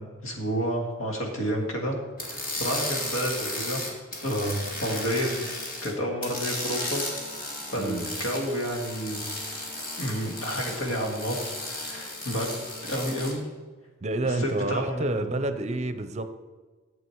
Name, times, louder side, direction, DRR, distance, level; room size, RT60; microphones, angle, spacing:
voice 1, 0.0-2.0 2.5-3.8 4.2-5.5 5.8-7.0 7.7-9.2 10.0-12.5 12.9-13.5 14.2-15.4, equal, 80° left, 1 dB, 2.0 m, -30 dB
sound 1, 2.2-5.9 6.2-13.3, left 1 dB, 45° left, 2.3 m, -34 dB
voice 2, 7.8-8.1 14.0-16.3, right 2 dB, 35° right, 10 dB, 0.6 m, -29 dB
11.5 x 7.6 x 4.6 m, 1.4 s
head